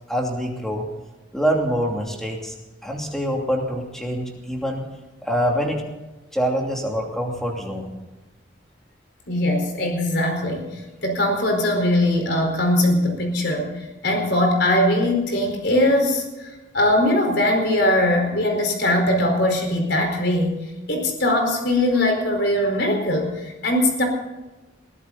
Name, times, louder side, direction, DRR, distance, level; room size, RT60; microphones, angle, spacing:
voice 1, 0.1-0.9 1.3-2.5 2.8-4.8 5.2-5.8 6.3-7.9, equal, ahead, 0 dB, 2.8 m, -25 dB
voice 2, 9.3-13.8 14.0-24.0, left 1 dB, 60° left, 3 dB, 4.6 m, -21 dB
21.5 x 15.0 x 4.1 m, 1.1 s
head